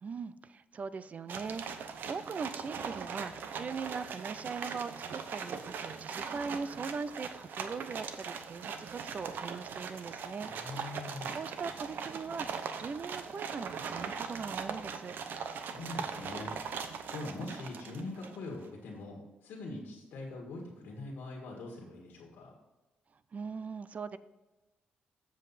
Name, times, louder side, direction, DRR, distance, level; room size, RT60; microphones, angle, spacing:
voice 1, 0.0-10.5 11.3-15.2 23.3-24.2, right 5 dB, 45° right, 16 dB, 0.5 m, -40 dB
sound 1, 1.3-18.5, right 6 dB, 75° right, 0.8 m, -40 dB
voice 2, 10.4-11.4 15.4-16.5 17.1-22.5, left 2 dB, 85° left, -1 dB, 1.7 m, -43 dB
7.4 x 7.2 x 4.1 m, 1.1 s
cardioid pair, 75°, 3 cm